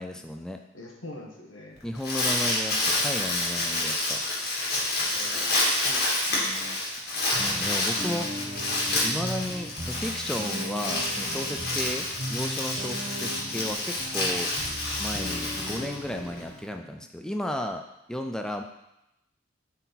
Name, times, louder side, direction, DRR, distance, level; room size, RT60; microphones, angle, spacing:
voice 1, 0.0-0.6 1.8-4.2 7.1-8.3 9.0-14.5 15.0-17.8 18.1-18.6, left 1 dB, 5° left, 4 dB, 0.3 m, -34 dB
voice 2, 0.7-1.8 5.1-5.3 5.7-6.8, left 1 dB, 80° left, 0 dB, 1.4 m, -44 dB
Crumpling crinkling, 1.8-16.4, left 2 dB, 55° left, 2.0 m, -28 dB
sound 1, 7.3-16.8, equal, 30° right, 1.3 m, -38 dB
7.9 x 4.3 x 4.1 m, 0.87 s
head